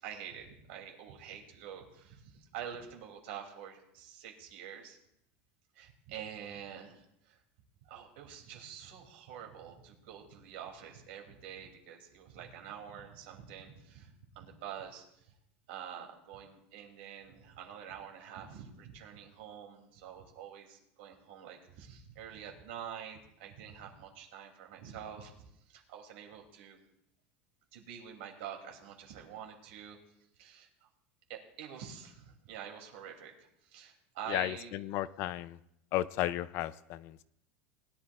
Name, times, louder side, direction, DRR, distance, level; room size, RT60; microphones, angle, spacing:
voice 1, 0.0-5.0 5.7-7.4 7.8-15.3 15.7-26.8 27.7-30.0 30.4-30.9 31.3-34.8, right 8 dB, 75° right, 2 dB, 2.7 m, -47 dB
voice 2, 34.3-35.6 35.9-37.2, left 14 dB, 45° left, 16 dB, 0.4 m, -34 dB
20.5 x 11.0 x 2.4 m, 0.77 s
supercardioid pair, 160°, 6 cm